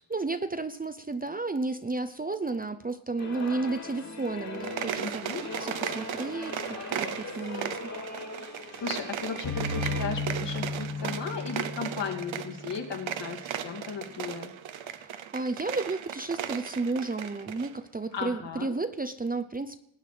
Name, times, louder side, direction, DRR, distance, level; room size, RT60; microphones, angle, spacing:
voice 1, 0.1-5.3 5.6-6.5 6.9-7.9 14.9-19.8, right 3 dB, 20° right, 10 dB, 0.6 m, -32 dB
sound 1, 3.2-10.1, left 3 dB, 35° left, 2.4 m, -40 dB
sound 2, 4.5-17.7, right 9 dB, 75° right, 1.0 m, -37 dB
voice 2, 5.0-5.4 8.8-14.5 18.1-18.7, left 5 dB, 65° left, 1 dB, 2.7 m, -36 dB
sound 3, 9.4-13.2, left 2 dB, 90° left, 4.2 m, -34 dB
20.0 x 9.5 x 5.0 m, 0.78 s
wide cardioid pair, 140°, 46 cm